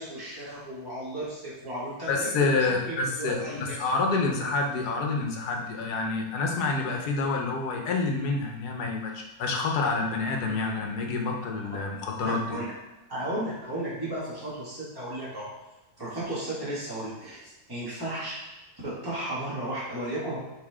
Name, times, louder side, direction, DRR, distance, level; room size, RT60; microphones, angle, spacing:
voice 1, 0.0-3.8 12.2-12.7 13.1-15.5 16.0-17.4 17.7-18.3 18.8-20.4, right 1 dB, 15° right, -9 dB, 2.0 m, -34 dB
voice 2, 2.1-12.6, left 3 dB, 85° left, 1 dB, 1.5 m, -28 dB
6.6 x 4.0 x 3.6 m, 1.0 s
omnidirectional pair, 1.6 m